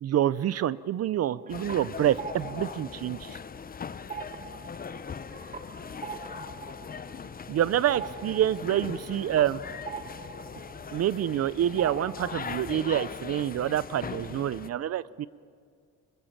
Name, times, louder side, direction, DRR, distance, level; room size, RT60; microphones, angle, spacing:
voice 1, 0.0-3.4 7.5-9.6 10.9-15.3, right 11 dB, 55° right, 18 dB, 0.5 m, -27 dB
sound 1, 1.2-3.7 4.0-11.5 11.8-12.6, right 5 dB, 25° right, 0.9 m, -43 dB
sound 2, 1.5-14.7, left 6 dB, 30° left, 0.7 m, -40 dB
voice 2, 6.2-6.9 8.9-10.5, left 6 dB, 55° left, 5 dB, 2.0 m, -53 dB
24.5 x 22.0 x 7.1 m, 2.2 s
cardioid pair, 90°, 30 cm